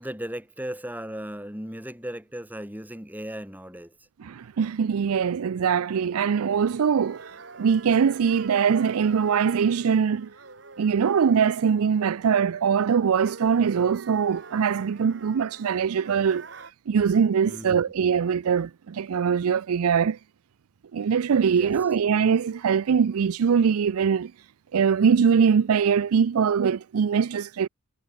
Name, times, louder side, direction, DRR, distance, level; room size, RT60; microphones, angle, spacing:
voice 1, 0.0-3.9 17.5-17.8 21.4-21.7, equal, 10° right, 4.7 m, -36 dB
voice 2, 4.2-10.3 10.8-16.5 16.9-20.2 20.9-24.3 24.7-27.7, right 6 dB, 75° right, 0.4 m, -22 dB
sound 1, 6.5-16.7, right 4 dB, 55° right, 4.1 m, -46 dB
head